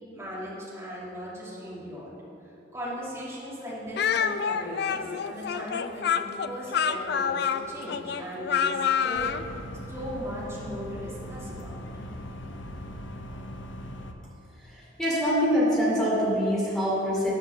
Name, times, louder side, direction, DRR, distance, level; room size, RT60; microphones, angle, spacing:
voice 1, 0.1-2.1 2.7-9.6 9.9-11.8, equal, 15° right, -8 dB, 2.4 m, -38 dB
Speech, 4.0-9.4, left 7 dB, 55° left, 0.3 m, -27 dB
sound 1, 9.1-14.1, equal, 70° left, 0.7 m, -40 dB
voice 2, 14.7-17.3, equal, 5° left, -7 dB, 2.5 m, -24 dB
11.0 x 5.3 x 6.9 m, 2.9 s
head